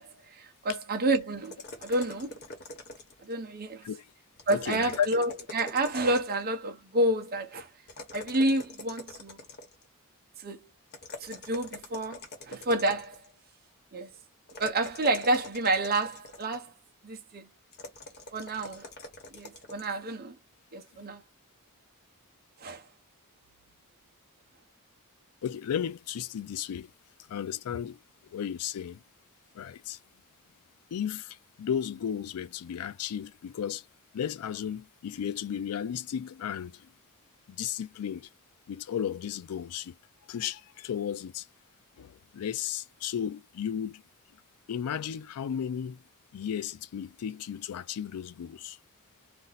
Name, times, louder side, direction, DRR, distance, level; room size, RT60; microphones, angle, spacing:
voice 1, 0.0-1.6 1.8-2.4 3.2-3.9 4.5-7.7 8.1-9.4 10.4-10.7 11.2-13.2 13.9-14.1 14.6-16.7 17.0-17.5 18.3-18.9 19.3-20.4 20.7-21.2 22.6-22.8, right 1 dB, 45° right, 0.7 m, -29 dB
sound 1, 1.4-3.3 4.4-6.4 7.9-9.9 10.9-13.3 14.5-16.7 17.7-19.9, left 2 dB, 50° left, 1.0 m, -44 dB
voice 2, 4.5-5.1 25.4-26.9 27.3-28.0 28.3-29.0 29.5-30.0 30.9-33.9 34.1-36.9 37.5-38.3 38.7-40.0 40.3-41.5 42.0-44.0 44.7-46.0 46.3-48.8, left 8 dB, 75° left, 0.3 m, -34 dB
2.6 x 2.1 x 3.9 m
head